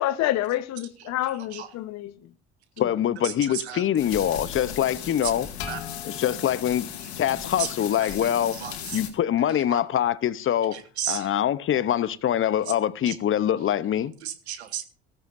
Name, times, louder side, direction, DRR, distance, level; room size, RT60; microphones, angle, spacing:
voice 1, 0.0-2.1 2.8-2.9, left 14 dB, 55° left, 1.0 m, -28 dB
voice 2, 1.2-1.7 3.2-3.8 4.3-4.4 5.7-5.8 7.6-7.7 8.0-9.0 9.7-9.8 10.7-11.3 11.7-11.8 13.1-13.2 14.2-14.8, right 10 dB, 85° right, 1.3 m, -34 dB
voice 3, 2.8-5.5 6.0-6.9 7.2-8.6 8.9-10.8 11.1-14.1, left 10 dB, 40° left, 0.8 m, -24 dB
sound 1, 4.0-9.1, left 8 dB, 80° left, 2.2 m, -36 dB
16.0 x 14.5 x 2.6 m
hypercardioid pair, 65°, 32 cm